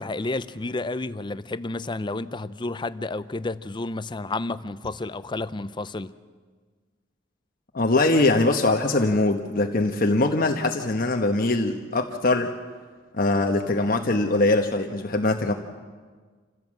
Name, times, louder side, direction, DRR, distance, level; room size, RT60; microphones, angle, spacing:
voice 1, 0.0-6.1, left 2 dB, 25° left, 0.6 m, -31 dB
voice 2, 7.7-12.5 13.1-15.5, left 2 dB, 50° left, 1.1 m, -22 dB
27.0 x 16.0 x 7.4 m
head